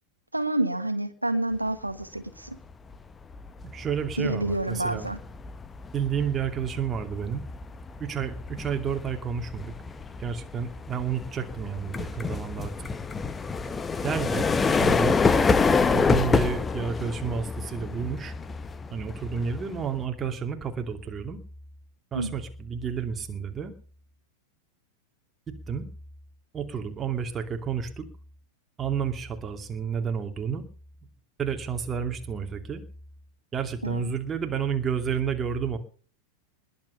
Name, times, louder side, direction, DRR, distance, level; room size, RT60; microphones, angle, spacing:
voice 1, 0.3-2.6 4.2-5.2 22.1-22.3 33.8-34.1, right 1 dB, 85° right, 8 dB, 1.5 m, -28 dB
sound 1, 2.6-2.9 3.3-20.0, left 4 dB, 15° left, 1.1 m, -27 dB
voice 2, 3.7-5.1 5.9-7.4 8.0-9.7 10.2-12.9 14.0-14.5 14.8-15.2 15.9-18.3 18.9-21.4 22.1-23.7 25.5-25.9 26.5-28.1 28.8-30.6 31.4-32.8 33.5-35.8, right 7 dB, 20° right, 5 dB, 2.5 m, -30 dB
21.0 x 7.9 x 6.7 m, 0.41 s
figure-of-eight pair, 90°, 0 cm